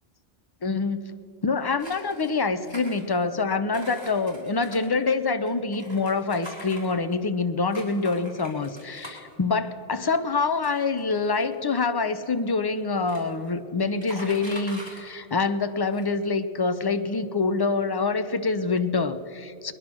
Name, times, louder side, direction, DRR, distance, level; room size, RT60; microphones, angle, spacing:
voice 1, 0.6-1.2 1.4-19.7, left 4 dB, 30° left, 11 dB, 0.5 m, -26 dB
sound 1, 1.8-2.3 2.6-3.4 3.7-7.2 7.7-9.3 10.0-10.1 10.6-11.7 12.5-12.6 12.8-13.5 13.8-15.0 15.5-15.6 15.9-16.2, equal, 25° right, 3.5 m, -43 dB
21.0 x 10.5 x 6.1 m, 2.6 s
omnidirectional pair, 1.1 m